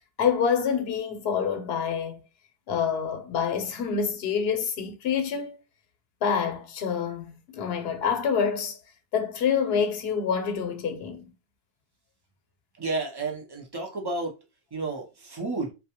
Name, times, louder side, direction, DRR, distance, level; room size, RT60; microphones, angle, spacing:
voice 1, 0.2-2.2 2.7-5.6 6.2-8.8 9.1-11.3, left 7 dB, 80° left, 0.8 m, -27 dB
voice 2, 12.8-14.4 14.7-15.7, right 3 dB, 30° right, 0.5 m, -31 dB
2.2 x 2.1 x 2.8 m
omnidirectional pair, 1.0 m